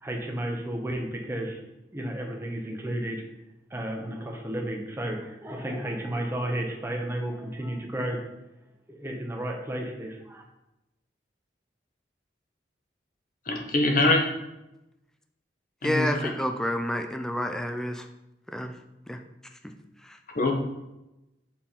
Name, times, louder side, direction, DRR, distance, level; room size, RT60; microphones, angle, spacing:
voice 1, 0.0-1.6 1.9-3.2 3.7-8.2 8.9-10.4, right 1 dB, 15° right, 1 dB, 0.8 m, -32 dB
voice 2, 13.5-14.3 15.8-16.3 20.3-20.5, left 2 dB, 50° left, 2 dB, 1.0 m, -23 dB
voice 3, 15.8-18.1 18.5-18.8 19.1-19.2 19.6-19.7 20.0-20.2, equal, 5° left, 6 dB, 0.4 m, -29 dB
5.7 x 4.1 x 4.4 m, 0.94 s
head